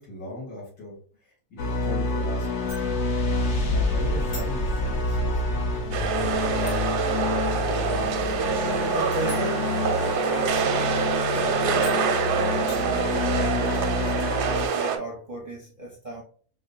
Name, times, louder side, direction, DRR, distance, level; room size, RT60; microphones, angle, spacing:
voice 1, 0.0-3.0 3.7-5.6, left 2 dB, 80° left, 2.5 m, -39 dB
sound 1, 1.6-14.7, left 2 dB, 55° left, 1.0 m, -27 dB
sound 2, 2.7-13.3, equal, 20° left, 0.9 m, -44 dB
sound 3, 5.9-15.0, right 7 dB, 90° right, 1.2 m, -26 dB
voice 2, 8.5-16.2, right 1 dB, 45° right, 0.6 m, -36 dB
4.8 x 2.1 x 2.6 m
omnidirectional pair, 1.7 m